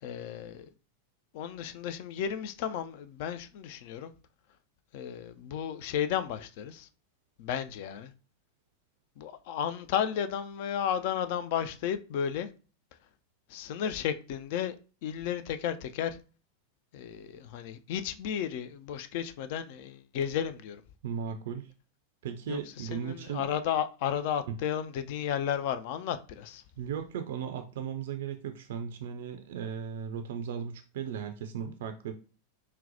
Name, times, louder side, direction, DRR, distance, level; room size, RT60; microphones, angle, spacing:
voice 1, 0.0-0.7 1.3-4.1 4.9-6.9 7.4-8.1 9.2-12.5 13.5-14.8 15.0-16.2 16.9-20.8 22.5-26.6, left 9 dB, 50° left, 0.3 m, -33 dB
voice 2, 21.0-21.7 22.2-23.5 24.5-24.6 26.8-32.1, right 8 dB, 55° right, 0.3 m, -36 dB
3.8 x 2.1 x 2.7 m
figure-of-eight pair, 90°, 0 cm